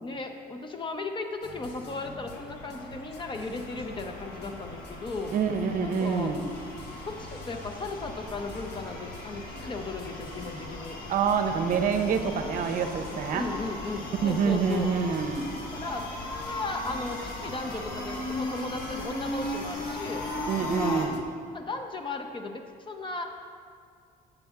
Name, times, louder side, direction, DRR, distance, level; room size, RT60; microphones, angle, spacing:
voice 1, 0.0-5.4 5.8-6.3 7.1-11.0 13.3-14.9 15.7-16.2 16.5-20.2 20.6-21.1 21.5-23.2, left 3 dB, 30° left, 5 dB, 0.6 m, -36 dB
sound 1, 1.4-21.2, left 2 dB, 80° left, 0.7 m, -46 dB
sound 2, 2.3-21.1, left 1 dB, 60° left, 1.3 m, -38 dB
voice 2, 5.3-6.4 11.1-13.5 14.2-15.5 20.5-21.2, right 6 dB, 55° right, 7 dB, 0.7 m, -26 dB
7.0 x 6.9 x 3.5 m, 2.3 s
cardioid pair, 110°, 17 cm